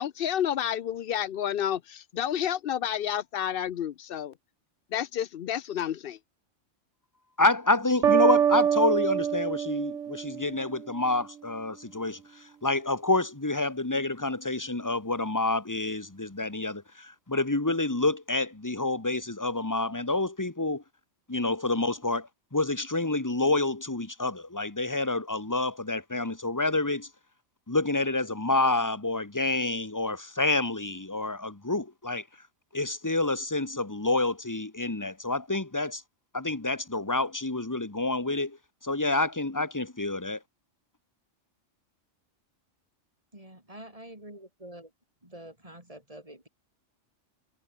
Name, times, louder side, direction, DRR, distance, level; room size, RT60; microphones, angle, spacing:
voice 1, 0.0-4.3 4.9-6.2, left 10 dB, 60° left, 0.7 m, -30 dB
voice 2, 7.4-20.8 21.3-27.1 27.7-32.2 32.7-36.0 36.3-38.6 38.8-40.4, left 2 dB, 15° left, 1.6 m, -28 dB
sound 1, 8.0-10.9, right 8 dB, 75° right, 1.4 m, -25 dB
voice 3, 43.3-44.9 45.2-46.5, right 1 dB, 30° right, 6.9 m, -46 dB
omnidirectional pair, 1.3 m